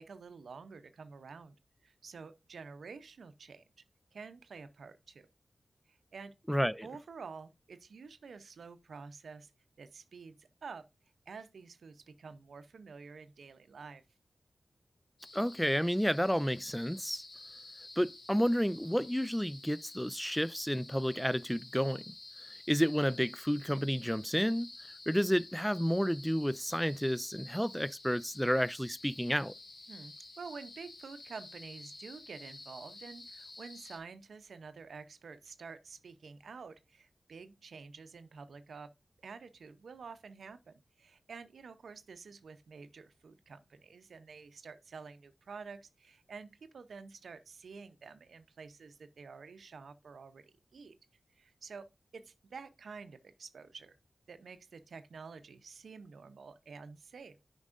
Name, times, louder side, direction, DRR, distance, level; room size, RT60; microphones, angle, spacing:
voice 1, 0.0-1.6 1.8-3.6 4.1-5.3 5.9-6.3 6.8-9.5 9.8-10.8 11.3-14.0 29.9-38.9 39.2-50.9 51.4-51.9 52.1-54.0 54.3-57.4, right 5 dB, 90° right, 0.6 m, -49 dB
voice 2, 6.5-6.9 15.3-17.2 18.0-22.1 22.7-24.7 25.1-29.5, equal, 5° left, 0.3 m, -31 dB
sound 1, 15.2-34.0, left 2 dB, 70° left, 1.6 m, -51 dB
9.6 x 5.3 x 2.5 m
cardioid pair, 50°, 0 cm